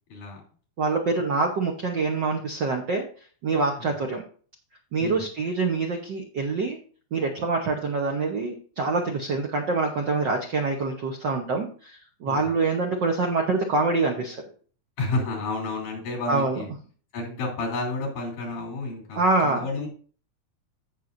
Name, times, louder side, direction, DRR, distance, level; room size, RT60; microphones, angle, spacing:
voice 1, 0.1-0.4 3.8-3.9 5.0-5.2 12.3-12.5 15.0-16.7 17.1-19.9, left 2 dB, 85° left, -2 dB, 4.7 m, -31 dB
voice 2, 0.8-3.1 3.4-4.2 4.9-6.8 7.1-14.4 16.3-16.6 19.1-19.9, right 3 dB, 85° right, 2 dB, 0.9 m, -25 dB
15.5 x 6.1 x 2.6 m, 0.43 s
omnidirectional pair, 3.6 m